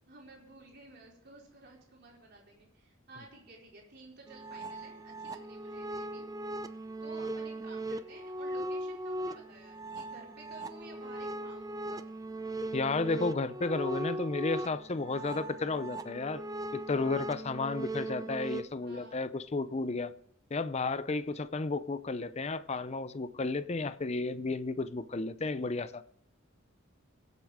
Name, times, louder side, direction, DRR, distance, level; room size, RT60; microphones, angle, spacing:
voice 1, 0.1-6.3 7.0-12.1 18.8-19.2 21.3-21.5, right 2 dB, 50° right, 4.5 m, -53 dB
sound 1, 4.3-18.6, right 1 dB, 15° right, 0.5 m, -39 dB
voice 2, 12.7-16.4 16.7-20.1 20.5-26.0, left 3 dB, 30° left, 0.5 m, -33 dB
22.5 x 8.0 x 3.6 m
head